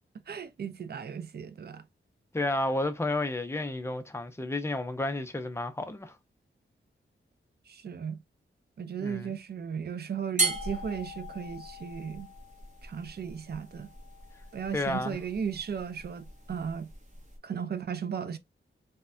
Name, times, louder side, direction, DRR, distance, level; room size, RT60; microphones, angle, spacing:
voice 1, 0.3-1.8 7.7-8.2 8.8-12.3 12.8-13.9 14.5-16.9 17.4-18.4, right 7 dB, 50° right, 0.4 m, -36 dB
voice 2, 2.3-6.2 9.0-9.4 14.7-15.2, left 2 dB, 10° left, 0.5 m, -31 dB
sound 1, 10.4-17.4, right 2 dB, 35° right, 1.0 m, -37 dB
3.2 x 2.1 x 2.4 m
wide cardioid pair, 100°, 21 cm